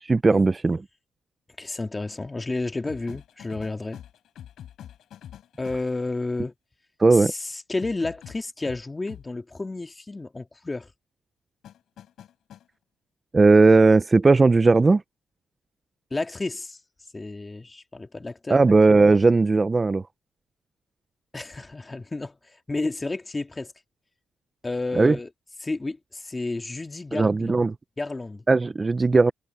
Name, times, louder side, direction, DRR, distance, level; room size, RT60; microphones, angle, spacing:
voice 1, 0.0-0.8 7.0-7.3 13.3-15.0 18.5-20.0 24.9-25.2 27.1-27.7 28.5-29.3, right 3 dB, 25° right, 0.7 m, -17 dB
voice 2, 1.6-4.0 5.6-6.5 7.1-10.9 16.1-16.8 17.1-18.6 21.3-23.7 24.6-25.3 25.6-27.7 28.0-28.4, left 2 dB, 20° left, 2.4 m, -31 dB
sound 1, 2.8-6.1 7.8-9.3 11.6-12.7 14.6-14.9, left 10 dB, 70° left, 7.1 m, -44 dB
cardioid pair, 90°, 0 cm